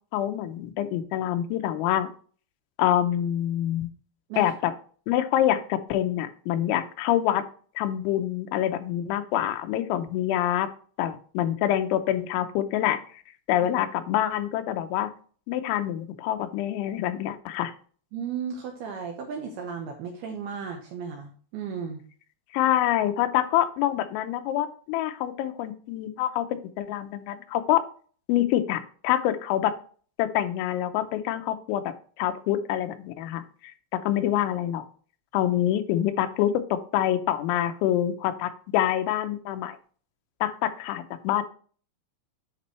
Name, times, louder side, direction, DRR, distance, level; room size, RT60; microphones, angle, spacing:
voice 1, 0.1-2.1 2.8-3.9 4.4-4.7 5.1-7.4 7.8-10.7 11.0-13.0 13.5-15.1 15.5-17.7 22.5-27.8 28.3-29.7 30.2-34.8 35.3-39.8 40.4-41.4, left 12 dB, 85° left, 9 dB, 3.0 m, -26 dB
voice 2, 18.1-22.0, right 6 dB, 75° right, 3 dB, 2.4 m, -35 dB
9.6 x 5.3 x 3.1 m, 0.43 s
omnidirectional pair, 5.4 m